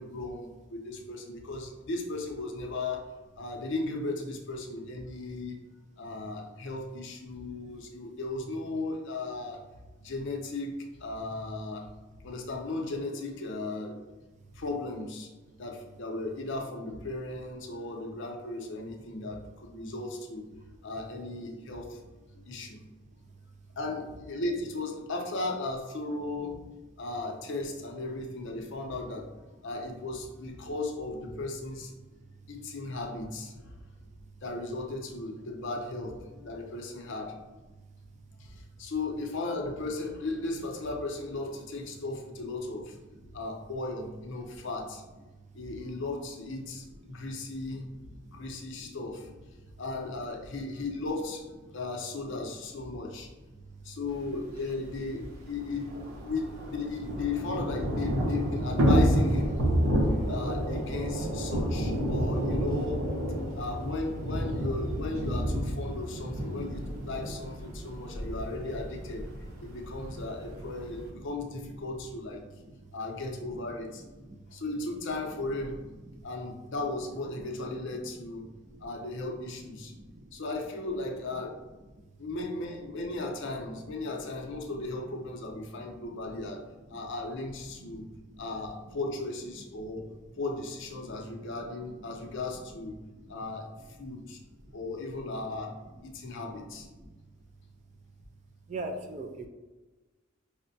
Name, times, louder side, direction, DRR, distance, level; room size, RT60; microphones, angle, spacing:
voice 1, 0.0-3.1 3.4-5.6 6.0-9.6 10.0-11.9 12.2-14.0 14.5-15.3 15.6-20.5 20.8-22.0 22.5-22.8 23.8-26.6 27.0-29.3 29.6-31.9 32.5-33.7 34.4-37.4 38.4-43.0 43.3-45.0 45.5-47.9 48.3-49.3 49.8-51.4 51.7-53.3 53.8-55.9 56.2-59.6 60.3-63.0 63.5-69.3 69.6-72.5 72.9-74.0 74.5-75.8 76.2-78.4 78.8-79.9 80.3-81.6 82.2-86.6 86.9-88.1 88.4-90.1 90.4-93.0 93.3-93.7 94.0-94.4 94.7-95.8 96.0-96.9, left 2 dB, 60° left, 2 dB, 0.6 m, -36 dB
Thunder / Rain, 54.5-54.6 54.8-54.9 55.2-71.1, equal, 85° right, 0.7 m, -30 dB
voice 2, 98.7-99.5, right 2 dB, 35° right, 4 dB, 0.4 m, -37 dB
5.0 x 2.1 x 2.6 m, 1.2 s
head